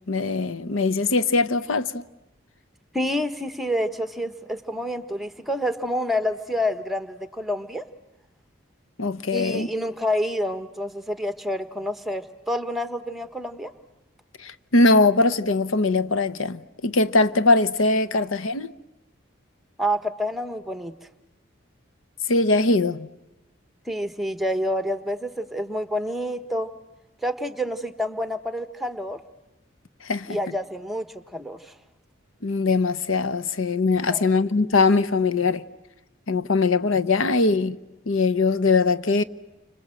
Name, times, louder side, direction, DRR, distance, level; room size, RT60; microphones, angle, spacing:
voice 1, 0.1-2.1 9.0-9.7 14.4-18.7 22.3-23.1 30.0-30.4 32.4-35.6 36.3-37.8 38.1-39.2, left 3 dB, 85° left, 0.9 m, -21 dB
voice 2, 2.9-7.8 9.3-13.7 19.8-20.9 23.9-26.7 27.2-29.2 30.3-31.1 31.3-31.7 34.1-34.3, equal, ahead, 1.1 m, -28 dB
29.5 x 25.5 x 7.7 m
head